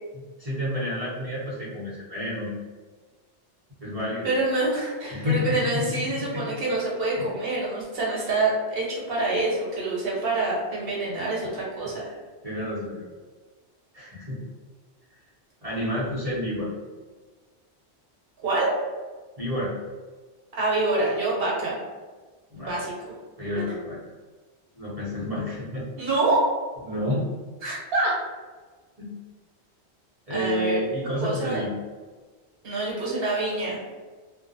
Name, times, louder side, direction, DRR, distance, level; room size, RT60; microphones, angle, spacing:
voice 1, 0.1-2.5 3.8-4.3 5.1-6.4 7.2-7.3 12.1-12.2 12.4-13.1 13.9-14.4 15.6-16.7 19.4-19.7 22.5-22.8 23.4-24.0 24.7-25.9 26.8-27.3 29.0-29.1 30.3-31.7, left 1 dB, 40° right, -10 dB, 0.8 m, -30 dB
voice 2, 4.2-12.0 18.4-18.7 20.5-21.8 22.6-22.9 26.0-26.4 27.6-28.1 30.3-30.8 31.2-31.6 32.6-33.8, right 2 dB, 60° right, -5 dB, 1.0 m, -26 dB
2.6 x 2.1 x 2.5 m, 1.4 s
omnidirectional pair, 1.1 m